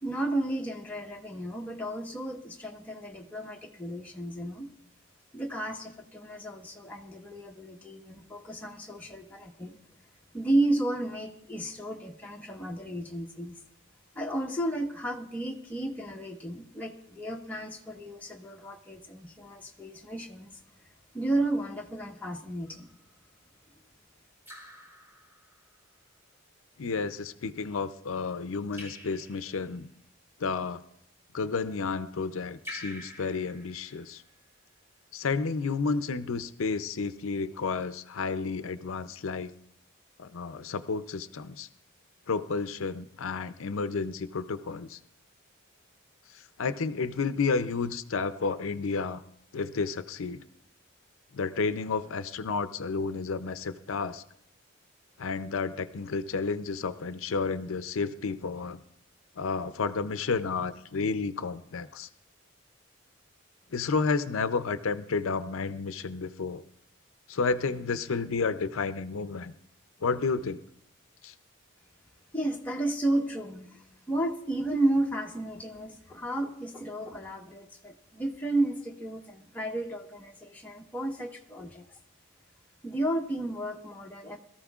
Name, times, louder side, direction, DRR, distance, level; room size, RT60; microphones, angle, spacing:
voice 1, 0.0-4.7 5.3-9.8 10.3-13.6 14.1-20.5 21.1-22.9 72.3-81.8 82.8-84.4, right 1 dB, 10° left, -1 dB, 1.1 m, -32 dB
Raindrop / Drip, 22.7-23.1 24.4-25.8 28.7-29.8 32.6-34.4, left 1 dB, 10° right, 2.5 m, -47 dB
voice 2, 26.8-29.9 30.4-30.8 31.3-34.2 35.1-39.5 40.2-41.7 42.3-45.0 46.3-49.2 49.5-50.4 51.3-54.2 55.2-58.8 59.4-62.1 63.7-66.6 67.3-69.5 70.0-70.6 71.2-71.3, left 4 dB, 80° left, 11 dB, 0.5 m, -31 dB
22.0 x 14.0 x 2.4 m, 0.71 s
head